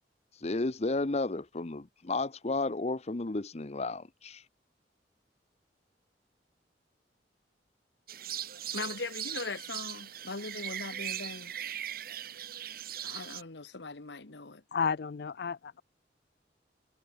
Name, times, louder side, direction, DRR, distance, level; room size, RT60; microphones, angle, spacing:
voice 1, 0.4-4.4, left 2 dB, 35° left, 0.8 m, -32 dB
sound 1, 8.1-13.4, right 10 dB, 55° right, 2.2 m, -39 dB
voice 2, 8.7-11.5 13.0-14.6, left 3 dB, 80° left, 1.5 m, -40 dB
voice 3, 14.7-15.8, left 6 dB, 60° left, 0.5 m, -32 dB
head